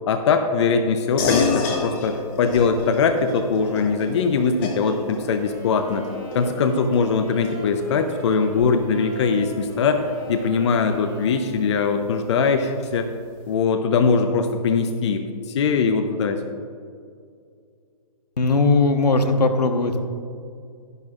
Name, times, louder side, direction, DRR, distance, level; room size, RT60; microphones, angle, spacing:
voice 1, 0.1-6.0 6.3-13.1 13.5-15.2 15.5-16.4, left 5 dB, 45° left, 7 dB, 0.7 m, -21 dB
sound 1, 1.2-11.0, left 4 dB, 25° left, 1.3 m, -31 dB
sound 2, 5.2-12.0, right 1 dB, 20° right, 2.7 m, -39 dB
voice 2, 18.4-20.0, left 3 dB, 85° left, 7 dB, 1.1 m, -19 dB
13.0 x 10.5 x 2.4 m, 2.3 s
hypercardioid pair, 140°, 20 cm